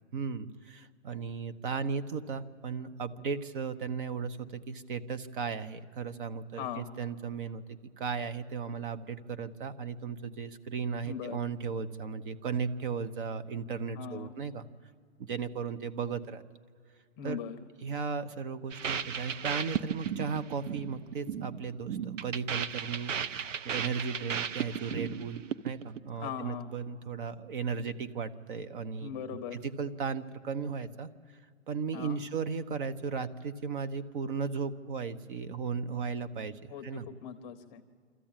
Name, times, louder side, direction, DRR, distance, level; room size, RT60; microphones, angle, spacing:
voice 1, 0.1-14.7 15.2-16.4 17.2-17.4 17.8-23.3 23.6-29.1 29.5-31.1 31.7-37.1, right 5 dB, 45° right, 13 dB, 0.9 m, -36 dB
voice 2, 6.5-6.9 11.0-11.4 14.0-14.3 17.2-17.6 26.2-26.7 29.0-29.6 31.9-32.2 36.7-37.8, left 8 dB, 20° left, 8 dB, 0.7 m, -40 dB
sound 1, 18.7-26.0, right 8 dB, 90° right, 0.9 m, -35 dB
26.0 x 14.0 x 8.9 m, 2.1 s
hypercardioid pair, 160°, 37 cm